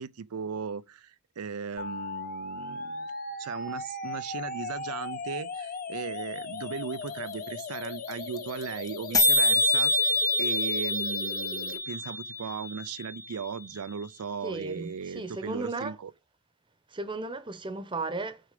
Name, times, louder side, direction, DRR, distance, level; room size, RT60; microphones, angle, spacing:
voice 1, 0.0-3.1 3.4-10.1 10.4-16.1, right 6 dB, 90° right, 0.5 m, -37 dB
sound 1, 1.8-11.8, left 3 dB, 40° left, 1.1 m, -38 dB
sound 2, 7.1-7.2 7.3-7.4 7.6-8.1 8.4-8.6 8.9-9.0 9.1-13.1, left 2 dB, 15° left, 0.5 m, -26 dB
voice 2, 14.4-16.0 16.9-18.4, right 3 dB, 20° right, 0.9 m, -35 dB
6.4 x 4.8 x 6.6 m
head